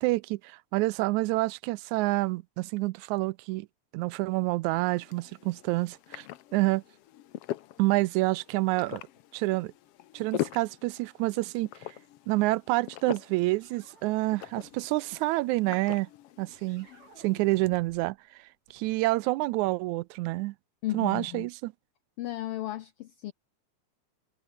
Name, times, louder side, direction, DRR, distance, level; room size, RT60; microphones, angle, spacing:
voice 1, 0.0-3.7 3.9-6.3 6.5-6.8 7.8-9.0 9.3-9.7 10.1-11.7 12.3-16.1 16.4-16.9 17.2-18.2 18.7-20.6 20.9-21.7, right 20 dB, 85° right, 1.9 m, -28 dB
sound 1, 4.7-17.6, left 13 dB, 65° left, 1.6 m, -42 dB
sound 2, 13.6-14.9 16.5-18.2 18.4-20.1, right 3 dB, 65° right, 7.8 m, -56 dB
voice 2, 20.8-21.5 22.2-23.3, left 15 dB, 85° left, 1.3 m, -34 dB
omnidirectional pair, 3.4 m